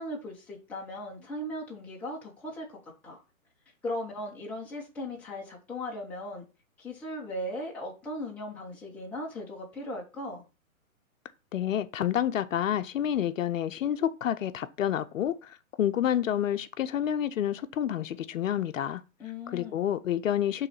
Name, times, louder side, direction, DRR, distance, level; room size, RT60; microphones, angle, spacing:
voice 1, 0.0-2.8 3.0-3.2 3.8-6.4 6.8-10.4 19.2-19.8, left 1 dB, 5° left, 0.6 m, -37 dB
voice 2, 11.5-19.0 19.5-20.7, left 10 dB, 65° left, 0.7 m, -29 dB
5.6 x 3.2 x 5.5 m
hypercardioid pair, 150°, 42 cm